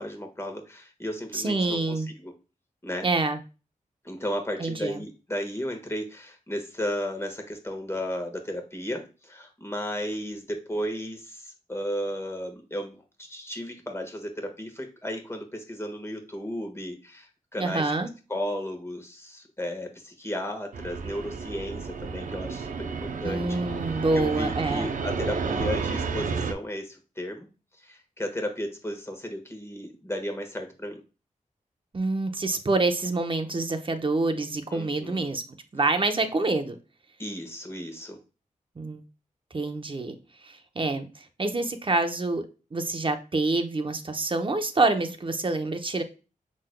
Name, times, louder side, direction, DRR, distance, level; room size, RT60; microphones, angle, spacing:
voice 1, 0.0-2.3 2.8-3.1 4.0-17.9 18.3-23.8 24.1-27.5 27.8-31.0 34.7-35.3 37.2-38.2, equal, 20° left, 3 dB, 1.4 m, -34 dB
voice 2, 1.3-2.1 3.0-3.4 4.6-5.0 17.6-18.1 23.2-24.9 31.9-35.4 35.7-36.8 38.8-39.0 39.5-40.2 40.4-42.5 42.7-46.0, right 3 dB, 35° right, 6 dB, 0.8 m, -27 dB
Fixed-wing aircraft airplane, 20.7-26.5, right 5 dB, 65° right, 0.6 m, -31 dB
6.2 x 3.8 x 2.2 m, 0.32 s
cardioid pair, 60°, 14 cm